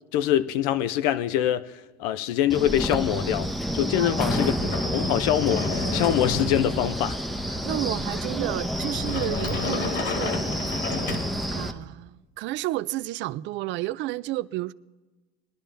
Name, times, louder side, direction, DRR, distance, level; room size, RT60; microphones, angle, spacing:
voice 1, 0.1-7.2 7.5-7.6, left 11 dB, 80° left, 0.6 m, -25 dB
Wind, 2.5-11.7, equal, ahead, 0.7 m, -29 dB
voice 2, 4.0-4.3 7.6-10.4 11.5-14.7, right 16 dB, 60° right, 0.5 m, -31 dB
Sliding door, 4.3-11.8, left 4 dB, 60° left, 1.8 m, -33 dB
20.5 x 11.0 x 3.4 m
supercardioid pair, 95°, 21 cm